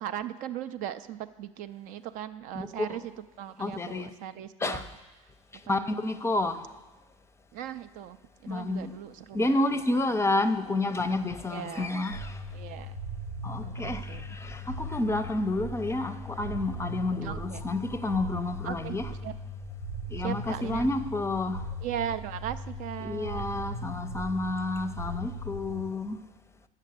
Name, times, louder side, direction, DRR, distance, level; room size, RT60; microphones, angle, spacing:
voice 1, 0.0-3.1 3.4-4.9 5.6-6.1 7.5-9.8 10.2-10.3 11.5-12.0 12.5-13.0 13.6-14.2 17.2-17.6 18.6-19.3 20.2-20.9 21.8-23.4, right 10 dB, 50° right, 0.4 m, -38 dB
voice 2, 2.5-3.0 3.6-4.1 4.6-4.8 5.7-6.6 8.5-8.9 9.3-12.4 13.4-19.1 20.1-21.6 23.0-26.2, left 2 dB, 15° left, 0.6 m, -30 dB
sound 1, 12.1-25.8, equal, 80° right, 0.9 m, -38 dB
7.5 x 6.5 x 7.9 m
hypercardioid pair, 70°, 17 cm